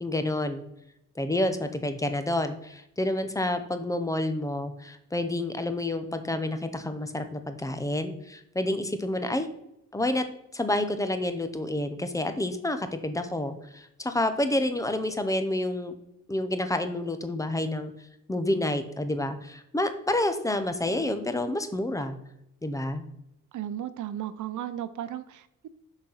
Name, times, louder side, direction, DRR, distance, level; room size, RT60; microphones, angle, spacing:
voice 1, 0.0-0.7 1.2-9.5 9.9-10.3 10.5-15.9 16.3-17.9 18.3-22.2 22.6-23.0, left 1 dB, 10° left, 9 dB, 0.6 m, -29 dB
voice 2, 23.5-25.7, right 11 dB, 60° right, 13 dB, 0.6 m, -35 dB
6.2 x 4.1 x 5.7 m, 0.82 s
wide cardioid pair, 150°, 34 cm